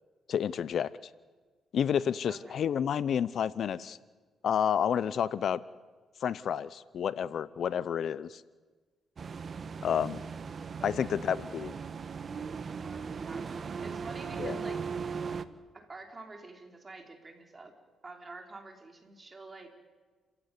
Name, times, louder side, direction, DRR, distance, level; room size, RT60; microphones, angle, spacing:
voice 1, 0.3-0.9 1.7-4.0 4.4-5.6 6.2-8.4 9.8-10.2 10.8-11.7 14.4-14.6, left 8 dB, 60° left, 18 dB, 0.7 m, -30 dB
voice 2, 2.3-2.6 10.8-11.1 12.6-14.8 15.7-17.7 18.0-19.7, right 3 dB, 25° right, 3 dB, 5.1 m, -48 dB
sound 1, 9.2-15.4, right 6 dB, 45° right, 1.3 m, -38 dB
29.5 x 16.0 x 9.7 m, 1.4 s
cardioid pair, 90°, 0 cm